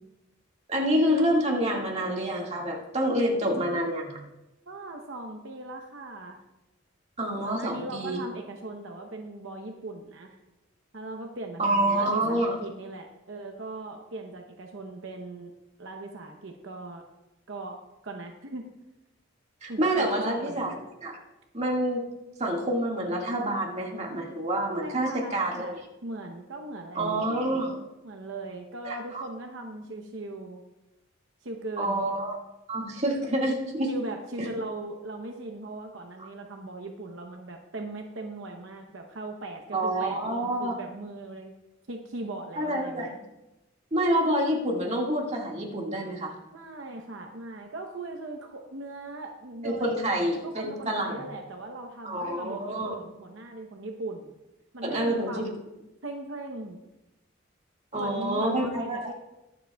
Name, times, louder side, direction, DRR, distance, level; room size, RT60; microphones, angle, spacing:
voice 1, 0.7-4.2 7.2-8.2 11.6-12.6 19.6-20.8 21.0-21.2 21.5-22.0 22.4-25.8 27.0-27.8 28.9-29.2 31.8-32.4 32.7-33.9 34.4-34.5 39.7-40.8 42.6-43.1 43.9-46.3 49.6-51.2 52.0-53.0 54.8-55.5 57.9-59.1, right 1 dB, 35° right, -1 dB, 1.9 m, -27 dB
voice 2, 4.7-6.4 7.4-10.4 10.9-15.5 15.8-17.0 17.5-18.7 19.7-20.8 24.8-27.1 28.0-30.6 31.4-32.1 33.9-41.5 41.9-43.1 46.5-50.1 50.4-54.3 54.7-55.6 56.0-56.8 57.9-59.1, right 2 dB, 75° right, 3 dB, 0.9 m, -39 dB
22.0 x 7.5 x 2.3 m, 0.98 s
head